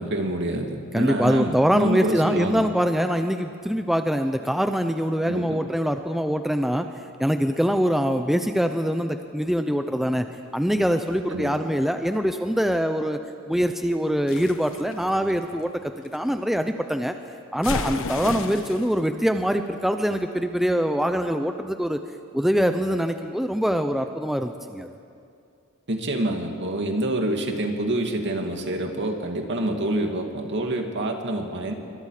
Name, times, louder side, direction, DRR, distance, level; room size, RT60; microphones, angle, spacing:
voice 1, 0.0-2.7 5.2-5.6 11.3-11.6 18.3-18.4 25.9-31.7, right 1 dB, 55° right, 3 dB, 2.5 m, -27 dB
voice 2, 0.9-6.9 7.2-13.2 13.5-17.1 17.5-22.0 22.3-24.9, equal, ahead, 7 dB, 0.6 m, -24 dB
sound 1, 14.3-16.2 17.6-18.9, left 3 dB, 65° left, 1.3 m, -33 dB
27.0 x 24.5 x 5.0 m, 2.5 s
head